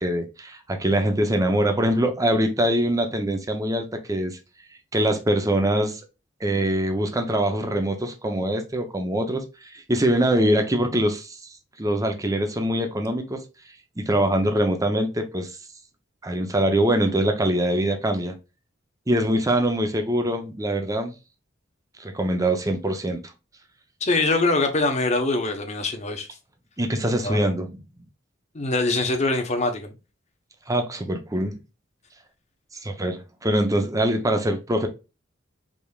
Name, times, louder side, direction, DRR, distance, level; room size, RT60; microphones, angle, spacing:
voice 1, 0.0-4.4 4.9-6.0 6.4-11.4 11.8-13.4 14.0-15.5 16.2-18.4 19.1-21.1 22.0-23.2 26.8-27.8 30.7-31.5 32.8-34.9, right 1 dB, 20° right, 0.7 m, -23 dB
voice 2, 24.0-26.3 27.2-27.5 28.5-29.9, left 2 dB, 35° left, 1.0 m, -23 dB
5.1 x 3.4 x 2.4 m
head